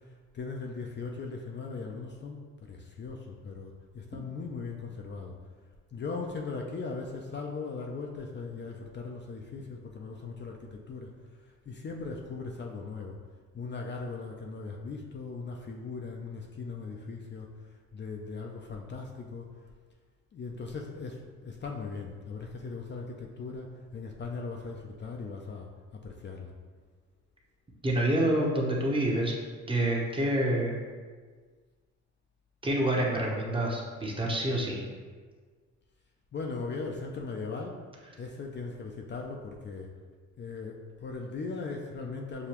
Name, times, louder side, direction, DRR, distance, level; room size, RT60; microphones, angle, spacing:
voice 1, 0.3-2.4 2.7-5.3 5.9-11.1 11.7-13.2 13.5-17.5 17.9-19.5 20.3-25.7 26.0-26.5 36.3-37.8 38.2-39.9 40.4-42.5, left 4 dB, 35° left, 0 dB, 0.5 m, -39 dB
voice 2, 27.8-29.3 29.7-30.7 32.6-34.8, right 1 dB, 15° right, -2 dB, 0.9 m, -27 dB
6.8 x 2.3 x 2.9 m, 1.5 s
cardioid pair, 90°, 30 cm